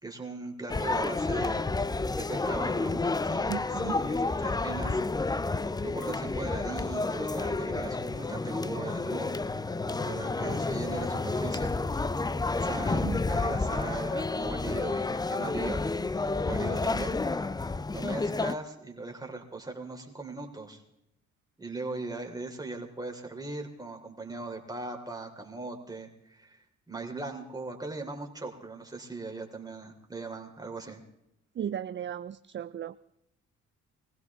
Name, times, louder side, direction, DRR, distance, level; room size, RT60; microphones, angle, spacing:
voice 1, 0.0-1.8 2.2-5.0 5.8-9.4 9.9-11.7 12.6-15.8 16.1-17.2 17.9-20.8 21.6-31.0, right 3 dB, 10° right, 1 dB, 3.2 m, -39 dB
sound 1, 0.7-18.6, left 3 dB, 15° left, 0.5 m, -30 dB
voice 2, 3.5-4.0 13.0-13.2 31.5-33.0, right 9 dB, 40° right, 13 dB, 0.5 m, -35 dB
21.5 x 16.0 x 3.6 m, 0.81 s
cardioid pair, 90°, 30 cm